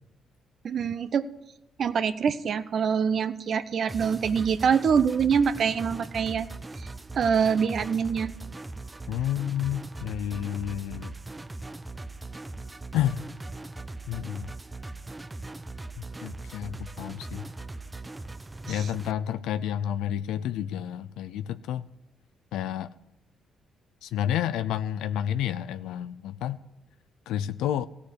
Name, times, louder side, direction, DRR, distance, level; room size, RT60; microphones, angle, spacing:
voice 1, 0.6-1.3 1.8-6.5 6.8-6.9 7.1-8.3 18.7-18.9, right 6 dB, 55° right, 12 dB, 0.7 m, -25 dB
sound 1, 3.9-19.1, right 2 dB, 15° right, 0.5 m, -40 dB
voice 2, 9.1-11.1 12.9-13.2 14.1-14.5 16.2-17.4 18.7-21.9 22.5-22.9 24.0-26.6 27.3-27.9, left 10 dB, 90° left, 14 dB, 0.4 m, -30 dB
15.0 x 6.7 x 9.7 m, 0.93 s
cardioid pair, 90°, 0 cm